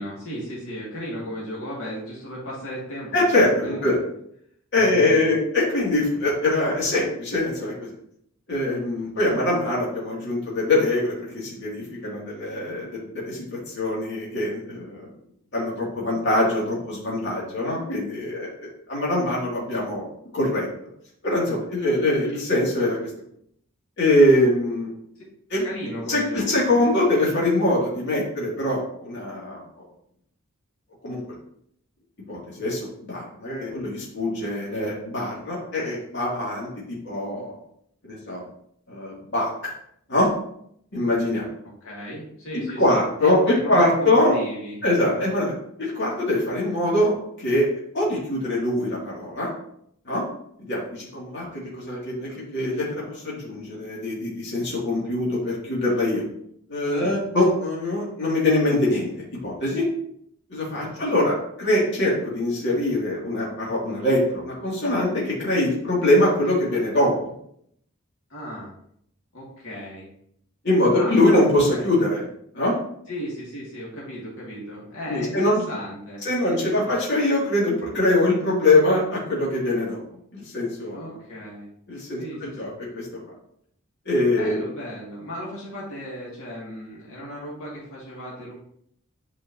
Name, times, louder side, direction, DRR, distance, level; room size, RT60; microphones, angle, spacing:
voice 1, 0.0-4.0 4.7-5.3 25.6-26.9 41.8-44.8 45.1-45.2 57.0-57.2 60.7-61.0 68.3-68.8 69.3-70.1 70.9-71.2 71.7-71.9 73.1-76.9 80.9-81.7 82.2-82.7 84.3-88.5, equal, 80° left, -5 dB, 2.2 m, -35 dB
voice 2, 3.1-4.0 4.7-7.9 8.5-15.1 15.5-18.5 18.9-20.0 20.3-20.7 21.2-23.1 24.0-24.9 25.5-25.7 26.1-29.6 31.0-31.2 32.3-37.6 38.0-38.4 38.9-39.7 40.1-40.3 40.9-41.5 42.5-44.4 44.8-45.5 45.8-47.7 47.9-49.5 50.1-50.2 50.6-56.2 56.7-59.1 59.4-59.8 60.5-67.3 70.6-72.2 72.5-72.7 75.1-75.6 76.2-80.0 80.3-81.0 81.9-83.1 84.1-84.6, left 1 dB, 55° left, -5 dB, 2.5 m, -23 dB
8.8 x 5.0 x 2.8 m, 0.69 s
head